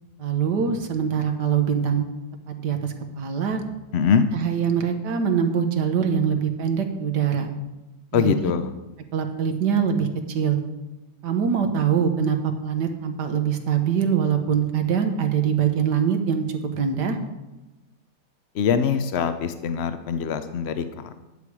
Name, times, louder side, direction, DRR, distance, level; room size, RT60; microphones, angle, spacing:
voice 1, 0.2-2.0 2.5-3.6 4.3-7.5 8.1-8.4 9.1-10.6 11.2-17.2, right 7 dB, 75° right, 6 dB, 1.7 m, -23 dB
voice 2, 3.9-4.3 8.1-8.7 18.6-21.1, left 7 dB, 75° left, 10 dB, 0.6 m, -23 dB
10.5 x 8.4 x 4.8 m, 1.0 s
omnidirectional pair, 1.8 m